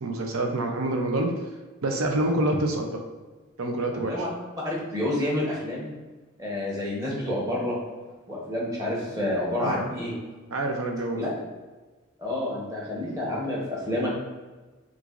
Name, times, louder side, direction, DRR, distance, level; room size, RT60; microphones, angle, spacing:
voice 1, 0.0-1.3 1.8-3.0 3.6-4.2 9.6-9.9 10.5-11.3, right 2 dB, 85° right, 3 dB, 0.7 m, -27 dB
voice 2, 4.6-5.9 6.4-7.8 8.3-10.1 11.1-11.3 12.2-14.1, left 1 dB, 15° right, -4 dB, 1.0 m, -29 dB
6.0 x 2.6 x 2.5 m, 1.3 s
head